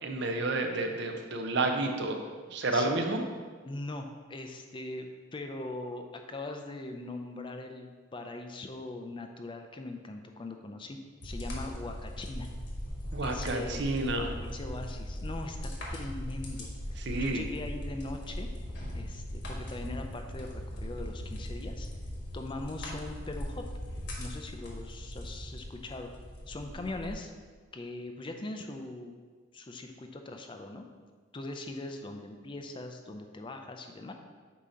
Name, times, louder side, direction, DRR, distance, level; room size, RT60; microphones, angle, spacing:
voice 1, 0.0-2.2 2.5-3.2 13.1-14.3 17.0-17.4, right 2 dB, 60° right, 4 dB, 0.7 m, -30 dB
voice 2, 2.7-3.0 3.6-12.5 13.2-13.9 14.4-16.7 17.2-18.5 18.9-21.9 22.3-23.7 24.2-26.1 26.5-27.3 27.7-29.2 29.5-30.9 31.3-34.1, left 2 dB, 25° left, 5 dB, 0.4 m, -41 dB
sound 1, 11.2-27.1, equal, 55° left, 1.4 m, -39 dB
8.3 x 2.9 x 5.0 m, 1.5 s
head